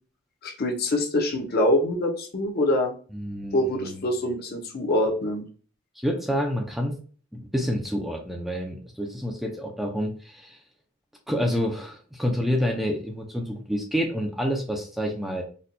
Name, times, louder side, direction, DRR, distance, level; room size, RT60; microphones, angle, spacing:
voice 1, 0.4-2.9 3.5-5.4, left 1 dB, 50° left, 2 dB, 0.7 m, -24 dB
voice 2, 3.1-4.0 6.0-7.0 7.3-10.6 11.3-15.4, equal, ahead, 1 dB, 0.4 m, -28 dB
4.1 x 2.2 x 2.6 m, 0.41 s
head